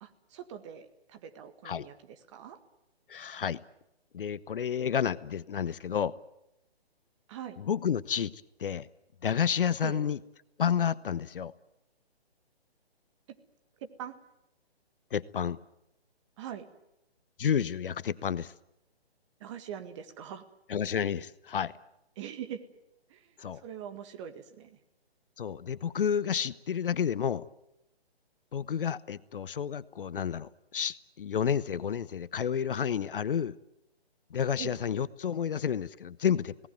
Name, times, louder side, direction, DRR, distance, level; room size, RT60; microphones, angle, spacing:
voice 1, 0.0-2.6 7.3-7.6 9.8-10.0 14.0-14.1 16.4-16.7 19.4-20.4 22.2-22.6 23.1-23.3 23.6-24.8 34.6-34.8, right 9 dB, 30° right, 8 dB, 1.8 m, -42 dB
voice 2, 3.1-3.6 4.1-6.1 7.6-8.9 9.2-10.2 10.6-11.5 15.1-15.6 17.4-18.5 20.7-21.7 23.4-23.6 25.4-27.4 28.5-33.5 34.3-36.7, left 8 dB, 55° left, 17 dB, 0.9 m, -30 dB
27.0 x 18.5 x 9.3 m, 0.88 s
figure-of-eight pair, 145°, 32 cm